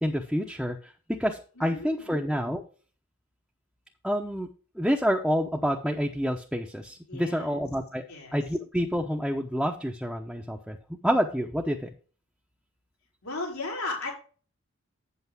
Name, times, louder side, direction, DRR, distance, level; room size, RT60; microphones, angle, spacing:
voice 1, 0.0-0.9 1.2-2.6 4.0-4.5 4.8-8.0 8.3-10.8 11.0-11.8, equal, ahead, -1 dB, 0.9 m, -28 dB
voice 2, 1.6-2.2 7.1-7.5 8.1-8.4 13.2-14.1, left 2 dB, 80° left, -1 dB, 4.9 m, -35 dB
8.8 x 8.3 x 3.6 m, 0.38 s
head